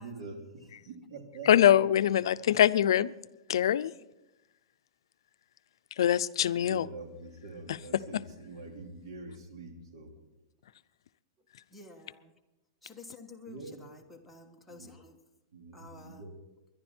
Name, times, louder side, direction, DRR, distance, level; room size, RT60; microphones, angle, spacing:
voice 1, 0.0-1.5 6.6-10.1 13.5-13.9 14.7-14.9 15.5-16.4, right 3 dB, 70° right, 3.0 m, -45 dB
voice 2, 1.5-3.1 3.5-3.9 6.0-6.9 7.7-7.8 8.1-8.2, left 10 dB, 80° left, 0.5 m, -23 dB
voice 3, 11.7-12.3 12.8-15.2 15.7-16.2, left 3 dB, ahead, 1.2 m, -51 dB
23.0 x 10.5 x 4.4 m
supercardioid pair, 165°, 3 cm